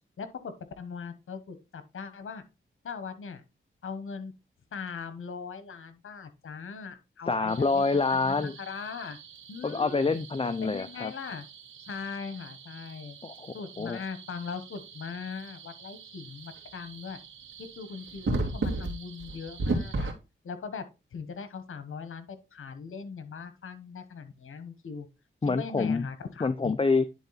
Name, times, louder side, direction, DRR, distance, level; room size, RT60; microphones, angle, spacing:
voice 1, 0.2-2.4 2.8-3.4 3.8-4.3 4.7-9.2 9.5-10.2 10.6-11.5 11.9-13.2 13.5-17.2 17.6-20.1 20.4-25.1 25.4-26.7, left 5 dB, 75° left, 11 dB, 1.2 m, -40 dB
voice 2, 7.3-8.6 9.6-11.1 13.2-14.0 25.4-26.1 26.4-27.1, left 4 dB, 25° left, 12 dB, 0.5 m, -27 dB
sound 1, 7.5-20.1, right 2 dB, 70° right, 2.4 m, -37 dB
10.5 x 3.8 x 4.1 m, 0.27 s
cardioid pair, 70°, 21 cm